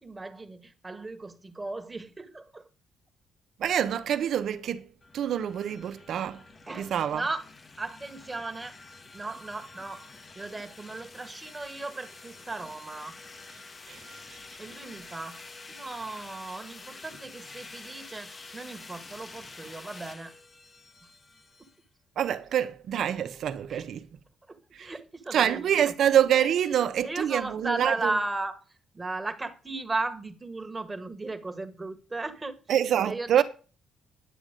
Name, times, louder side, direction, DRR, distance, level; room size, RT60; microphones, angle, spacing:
voice 1, 0.0-2.7 6.7-7.4 7.8-8.8 9.1-10.1 10.3-13.2 14.6-20.3 21.6-21.7 23.7-23.9 24.5-25.9 27.0-28.6 28.9-32.6 33.1-33.4, right 2 dB, 20° right, 1.5 m, -36 dB
voice 2, 3.6-4.9 5.1-6.4 6.8-7.2 13.9-14.4 22.2-24.0 24.7-24.9 25.3-28.1 32.7-33.4, right 10 dB, 70° right, 1.0 m, -26 dB
sound 1, 5.0-21.8, left 3 dB, 35° left, 1.3 m, -48 dB
10.5 x 7.3 x 5.2 m
cardioid pair, 90°, 0 cm